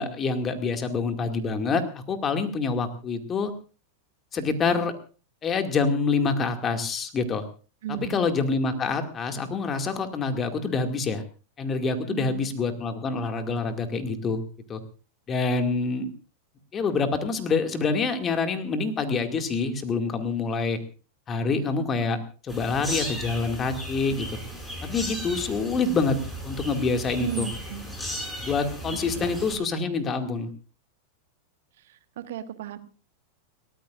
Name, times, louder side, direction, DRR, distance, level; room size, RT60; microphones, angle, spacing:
voice 1, 0.0-3.5 4.3-4.9 5.4-7.4 7.9-11.2 11.6-14.4 14.7-14.8 15.3-16.1 16.7-20.8 21.3-22.2 22.4-24.3 24.8-26.2 26.4-27.5 28.4-30.5, left 4 dB, 25° left, 6 dB, 2.3 m, -26 dB
voice 2, 7.8-8.2 12.1-12.5 27.2-27.8 29.1-29.7 31.9-32.0 32.2-32.8, right 10 dB, 55° right, 11 dB, 1.4 m, -35 dB
sound 1, 22.5-29.6, equal, 5° left, 5.6 m, -35 dB
29.5 x 14.0 x 2.6 m, 0.36 s
figure-of-eight pair, 90°, 0 cm